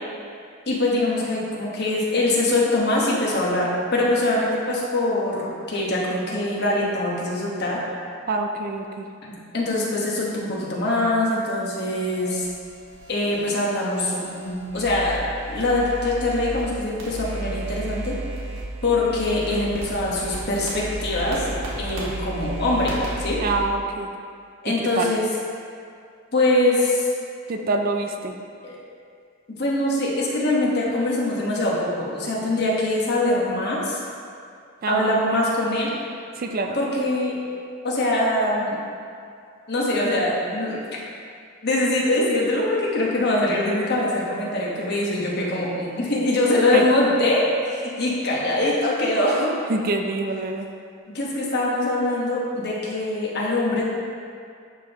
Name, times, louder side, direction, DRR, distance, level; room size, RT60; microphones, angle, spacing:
voice 1, 0.7-7.8 9.3-12.5 13.1-18.1 18.8-23.4 24.6-25.2 26.3-27.1 28.6-28.8 29.6-34.0 34.9-35.9 36.7-37.4 37.8-38.8 39.7-40.8 41.6-49.5 51.1-53.8, left 1 dB, 50° left, -4 dB, 1.2 m, -23 dB
voice 2, 8.3-9.1 23.4-24.1 24.7-25.1 27.5-28.4 34.8-35.2 36.4-36.8 46.7-46.8 49.7-50.7, right 3 dB, 45° right, 4 dB, 0.4 m, -26 dB
sound 1, 12.0-16.6 17.0-23.6, right 2 dB, 65° right, 1.4 m, -34 dB
11.0 x 3.7 x 3.0 m, 2.3 s
head